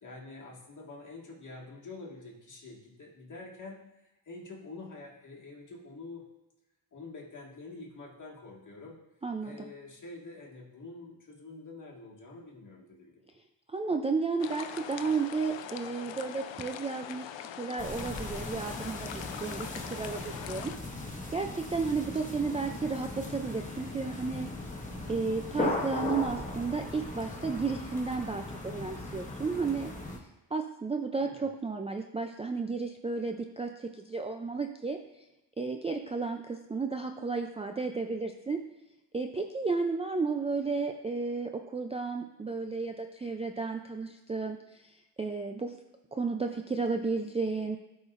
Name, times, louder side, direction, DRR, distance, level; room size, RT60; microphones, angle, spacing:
voice 1, 0.0-3.9 4.3-6.3 6.9-9.0 9.4-13.2 31.1-31.5, left 3 dB, 45° left, -3 dB, 2.0 m, -46 dB
voice 2, 9.2-9.7 13.7-21.0 21.3-24.5 25.1-29.9 30.5-35.0 35.6-38.6 39.1-45.7 46.1-47.8, right 4 dB, 15° right, 4 dB, 0.3 m, -33 dB
sound 1, 14.4-20.8, left 9 dB, 80° left, 0.6 m, -42 dB
sound 2, 17.8-30.2, left 2 dB, 20° left, 1.2 m, -38 dB
12.0 x 4.9 x 2.5 m, 0.99 s
cardioid pair, 95°, 43 cm